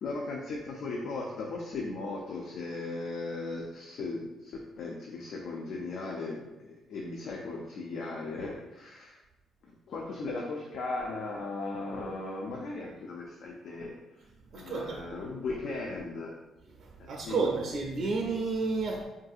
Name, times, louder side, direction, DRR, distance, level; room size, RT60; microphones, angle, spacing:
voice 1, 0.0-9.2 9.9-14.0 14.5-16.3 17.0-17.6, left 3 dB, 70° left, -1 dB, 0.4 m, -37 dB
voice 2, 14.5-15.2 16.8-19.0, right 4 dB, 65° right, 0 dB, 0.4 m, -31 dB
3.6 x 2.6 x 2.3 m, 1.0 s
cardioid pair, 90°, 0 cm